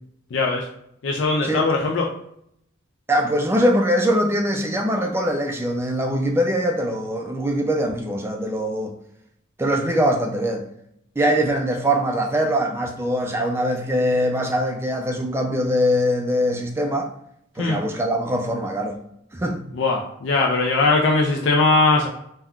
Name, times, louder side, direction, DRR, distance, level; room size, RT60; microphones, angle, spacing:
voice 1, 0.3-0.7 1.0-2.1 17.6-17.8 19.7-22.1, left 3 dB, 70° left, 0 dB, 0.4 m, -20 dB
voice 2, 3.1-8.9 9.6-10.6 11.2-17.1 17.6-19.0 19.3-19.6, equal, 15° right, 3 dB, 0.3 m, -22 dB
3.5 x 2.2 x 2.3 m, 0.74 s
head